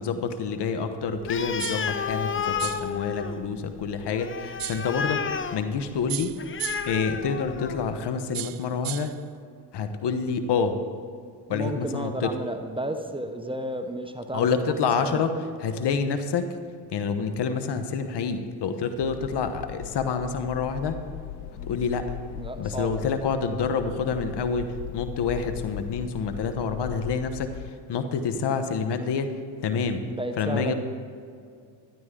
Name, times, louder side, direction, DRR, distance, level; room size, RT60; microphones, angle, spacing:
voice 1, 0.0-6.4 6.8-9.1 9.7-10.8 11.5-12.4 14.3-15.3 15.6-16.6 16.9-21.0 21.7-22.2 22.6-30.1 30.4-30.7, left 5 dB, 60° left, 9 dB, 1.2 m, -28 dB
Animal, 1.2-8.0, left 6 dB, 25° left, 0.6 m, -32 dB
sound 1, 1.6-1.9 2.6-2.9 4.6-4.9 6.1-7.0 8.3-9.2, right 15 dB, 50° right, 0.5 m, -35 dB
voice 2, 11.5-14.5 15.0-15.2 21.5-21.7 22.3-22.9 30.0-30.7, right 1 dB, 10° right, 6 dB, 0.9 m, -32 dB
sound 2, 19.0-27.7, left 13 dB, 85° left, 0.6 m, -39 dB
12.5 x 11.5 x 3.8 m, 2.3 s
supercardioid pair, 65°, 47 cm